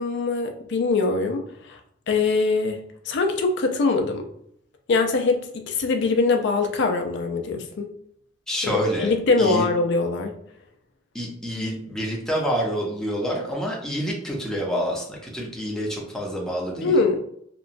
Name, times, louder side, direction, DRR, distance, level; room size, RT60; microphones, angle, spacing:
voice 1, 0.0-1.8 2.1-4.3 4.9-7.9 8.6-8.7 9.0-10.4 16.8-17.2, left 3 dB, 65° left, 5 dB, 0.4 m, -23 dB
voice 2, 8.5-9.1 9.4-9.7 11.1-16.9, equal, 5° left, -3 dB, 0.6 m, -27 dB
2.8 x 2.2 x 2.5 m, 0.69 s
head